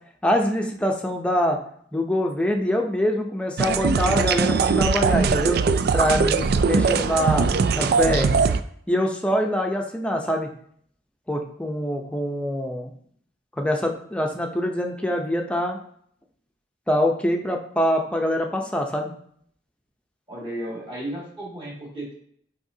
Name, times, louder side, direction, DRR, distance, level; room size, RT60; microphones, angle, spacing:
voice 1, 0.2-1.6 1.9-5.6 5.9-7.5 7.7-8.4 8.9-10.5 11.3-12.9 13.6-15.8 16.9-19.1, equal, 5° left, 2 dB, 0.7 m, -24 dB
sound 1, 3.6-8.6, right 5 dB, 55° right, 0.3 m, -21 dB
voice 2, 20.3-22.1, right 1 dB, 30° right, -5 dB, 2.2 m, -34 dB
10.0 x 3.6 x 2.8 m, 0.64 s
head